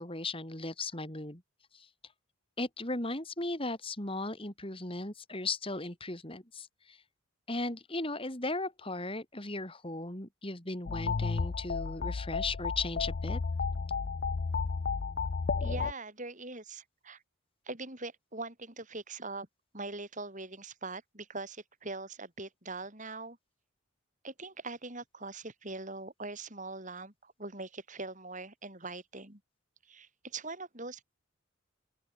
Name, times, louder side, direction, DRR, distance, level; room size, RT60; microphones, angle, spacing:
voice 1, 0.0-1.4 1.7-1.9 2.6-7.0 7.5-13.4, left 2 dB, 25° left, 3.5 m, -37 dB
sound 1, 10.9-15.9, left 4 dB, 45° left, 0.4 m, -32 dB
voice 2, 15.6-17.2 17.6-19.5 19.7-23.4 24.2-29.4 29.8-31.0, right 3 dB, 35° right, 6.2 m, -42 dB
open air
head